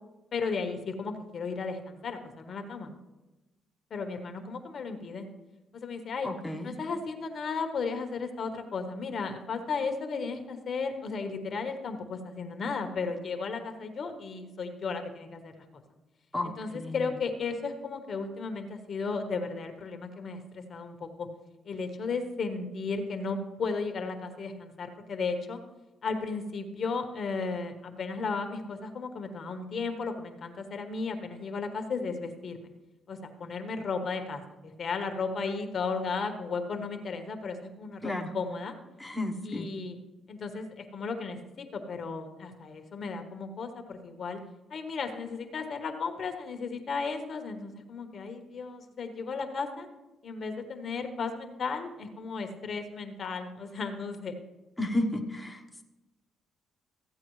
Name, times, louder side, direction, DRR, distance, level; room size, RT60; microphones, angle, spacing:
voice 1, 0.3-2.9 3.9-5.2 5.7-6.3 6.6-15.6 16.4-21.3 21.6-25.6 26.0-32.7 33.1-38.0 38.3-38.7 39.4-40.0 40.3-44.4 44.7-49.9 50.2-54.3, left 4 dB, 55° left, 6 dB, 1.2 m, -35 dB
voice 2, 6.2-6.8 16.3-17.1 38.0-38.3 39.0-39.7 54.8-55.8, left 1 dB, 5° left, 0 dB, 1.1 m, -33 dB
14.5 x 8.3 x 3.2 m, 1.0 s
cardioid pair, 90°, 0 cm